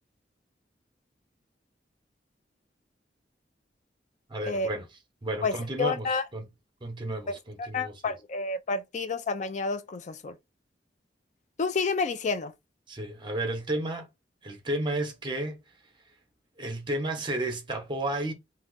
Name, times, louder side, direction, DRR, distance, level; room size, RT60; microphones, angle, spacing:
voice 1, 4.3-6.5 6.8-8.1 12.9-14.1 14.4-15.6 16.6-18.3, right 1 dB, 25° right, 0.8 m, -32 dB
voice 2, 5.4-6.2 7.3-10.4 11.6-12.5, left 4 dB, 45° left, 0.4 m, -30 dB
2.6 x 2.3 x 3.8 m
head